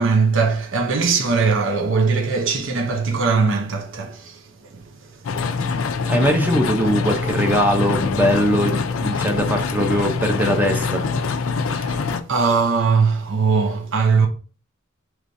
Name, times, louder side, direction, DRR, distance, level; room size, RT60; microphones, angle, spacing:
voice 1, 0.0-4.8 11.7-14.3, right 4 dB, 65° right, 0.7 m, -20 dB
sound 1, 5.2-12.2, left 4 dB, 70° left, 0.4 m, -24 dB
voice 2, 6.1-11.1, equal, 10° right, 0.6 m, -21 dB
5.0 x 3.1 x 2.6 m
head